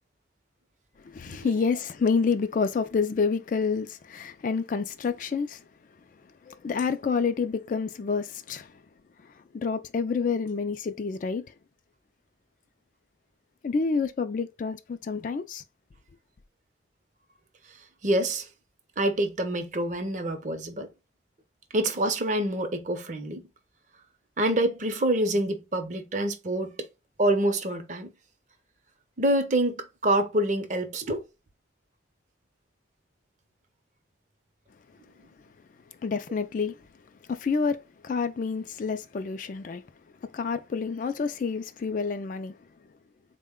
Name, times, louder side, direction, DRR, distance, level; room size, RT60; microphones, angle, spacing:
voice 1, 1.0-5.6 6.5-8.7 9.5-11.4 13.6-15.6 36.0-36.8 37.3-39.8 40.3-42.6, left 5 dB, 45° left, 0.3 m, -28 dB
voice 2, 18.0-18.5 19.0-20.9 21.7-23.4 24.4-26.9 27.2-28.1 29.2-31.3, right 1 dB, 40° right, 0.6 m, -26 dB
3.8 x 2.1 x 3.6 m
head